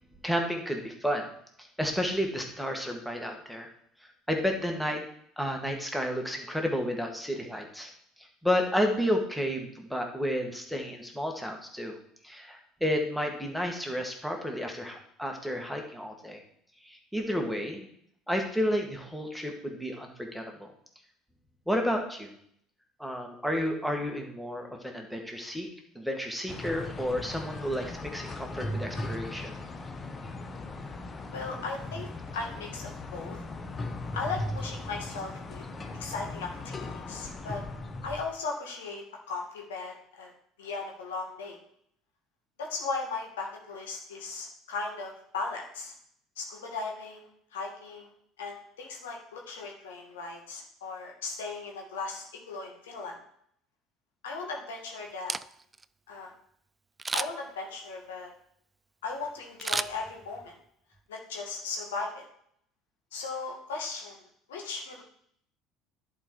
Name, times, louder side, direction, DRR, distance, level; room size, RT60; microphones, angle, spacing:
voice 1, 0.2-1.3 1.8-3.7 4.3-5.0 5.4-7.9 8.4-11.9 12.2-16.4 16.8-17.9 18.3-20.7 21.7-22.3 23.0-25.7 26.0-29.5, equal, ahead, 2 dB, 1.9 m, -31 dB
sound 1, 26.5-38.2, left 2 dB, 30° left, 1.1 m, -38 dB
voice 2, 31.3-33.4 34.1-35.6 35.9-37.6 38.0-40.3 40.6-41.6 42.6-45.9 46.4-48.1 48.4-53.2 54.2-55.4 56.1-56.3 57.1-58.3 59.0-60.6 61.1-62.3 63.1-64.2 64.5-65.0, left 4 dB, 80° left, 0 dB, 1.9 m, -37 dB
Camera, 55.1-55.9 57.0-57.6 59.6-60.5 61.0-61.1, right 3 dB, 20° right, 0.3 m, -33 dB
10.5 x 4.7 x 4.7 m, 0.67 s
hypercardioid pair, 65°, 0 cm